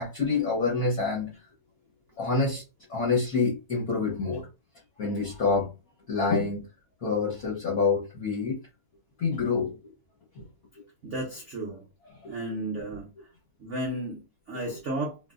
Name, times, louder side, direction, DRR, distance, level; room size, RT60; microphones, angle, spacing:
voice 1, 0.0-1.4 2.2-2.6 2.9-4.5 5.0-5.7 6.1-6.7 7.0-8.6 9.2-9.9 10.4-10.5 10.8-10.9 12.2-12.3, left 4 dB, 55° left, 1.0 m, -27 dB
voice 2, 11.0-11.8 12.3-13.1 13.6-15.3, right 1 dB, 80° right, 0.6 m, -33 dB
3.1 x 2.6 x 2.3 m
omnidirectional pair, 2.3 m